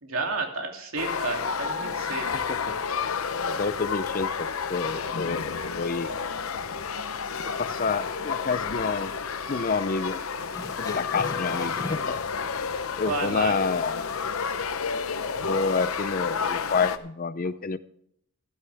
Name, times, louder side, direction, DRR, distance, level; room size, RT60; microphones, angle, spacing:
voice 1, 0.0-2.4 13.0-13.5, right 3 dB, 70° right, 2 dB, 2.8 m, -31 dB
sound 1, 1.0-17.0, left 6 dB, 75° left, 0.8 m, -30 dB
voice 2, 2.3-2.7 3.5-6.1 7.6-9.1 9.5-10.2 10.8-12.2 13.0-13.9 15.4-17.8, left 4 dB, 40° left, 15 dB, 0.6 m, -28 dB
sound 2, 7.4-8.1 8.4-8.6 9.2-9.3 9.6-9.7 10.5-12.2, left 1 dB, 15° left, 1.0 m, -39 dB
14.0 x 13.0 x 3.5 m, 0.70 s
head